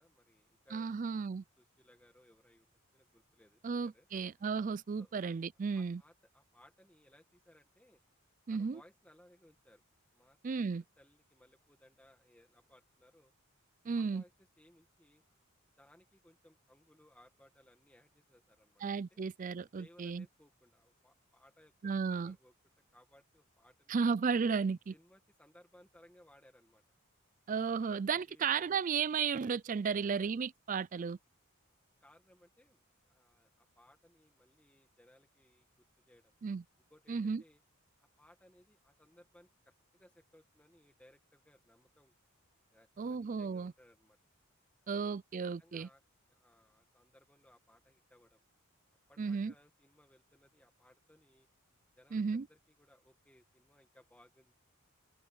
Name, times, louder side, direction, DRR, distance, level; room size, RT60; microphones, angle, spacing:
voice 1, 0.0-0.9 1.3-4.1 5.0-5.1 5.7-8.0 8.5-9.8 10.1-10.7 11.0-13.3 13.9-15.2 15.8-18.8 19.1-19.2 19.7-24.1 24.9-26.8 27.8-28.7 29.9-30.3 32.0-35.7 36.1-36.3 36.9-37.6 38.0-42.1 42.7-44.2 44.9-45.0 45.6-46.0 46.3-48.4 49.1-51.5 52.0-54.5, left 1 dB, 5° left, 1.6 m, -64 dB
voice 2, 0.7-1.4 3.6-6.0 8.5-8.8 10.4-10.8 13.9-14.2 18.8-20.3 21.8-22.4 23.9-24.9 27.5-31.2 36.4-36.6 37.1-37.4 43.0-43.7 44.9-45.9 49.2-49.5 52.1-52.5, right 5 dB, 35° right, 0.3 m, -34 dB
open air
head